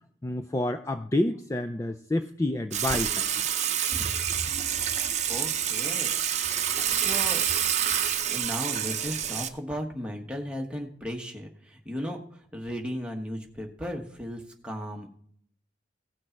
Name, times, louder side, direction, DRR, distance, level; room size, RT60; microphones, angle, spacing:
voice 1, 0.2-3.3, left 1 dB, 15° left, 8 dB, 0.4 m, -28 dB
Water / Water tap faucet / Sink (filling or washing), 2.7-9.5, right 9 dB, 40° right, 0.8 m, -27 dB
voice 2, 3.9-4.4 5.3-6.2 6.9-7.4 8.3-15.1, equal, 5° right, 1 dB, 1.2 m, -36 dB
16.5 x 6.4 x 4.5 m, 0.64 s
head